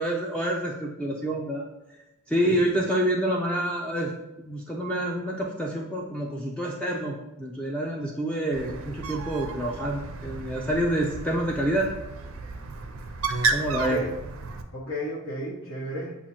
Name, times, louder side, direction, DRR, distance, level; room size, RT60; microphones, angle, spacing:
voice 1, 0.0-1.6 2.3-4.1 4.4-11.9 13.5-14.0, right 1 dB, 5° left, -2 dB, 0.3 m, -27 dB
Bird, 8.5-14.6, right 3 dB, 75° right, 0.4 m, -32 dB
voice 2, 13.7-14.1 14.7-16.2, equal, 70° left, -7 dB, 0.9 m, -33 dB
7.2 x 2.5 x 2.8 m, 0.98 s
head